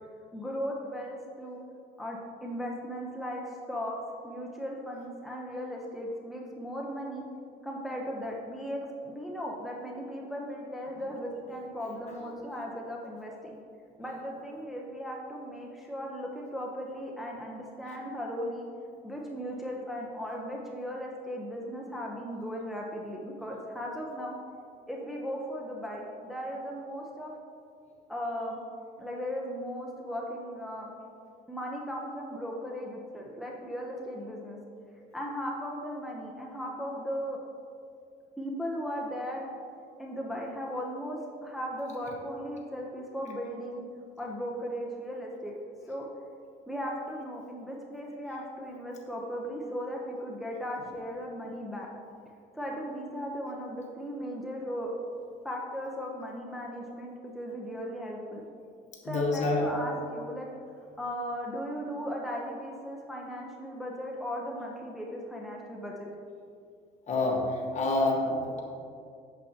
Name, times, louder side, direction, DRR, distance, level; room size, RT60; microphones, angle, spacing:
voice 1, 0.3-1.6 2.0-4.0 4.2-7.2 7.6-13.6 14.0-18.7 19.0-24.3 24.9-27.3 28.1-28.6 29.0-30.9 31.5-34.6 35.1-37.4 38.4-39.5 40.0-43.9 44.2-45.5 45.9-46.0 46.7-51.9 52.5-54.9 55.4-58.4 59.0-60.5 61.0-66.1, equal, ahead, -2 dB, 0.8 m, -37 dB
voice 2, 59.0-59.7 67.1-68.6, left 2 dB, 45° left, -1 dB, 1.5 m, -27 dB
8.2 x 7.1 x 2.9 m, 2.3 s
cardioid pair, 110°, 17 cm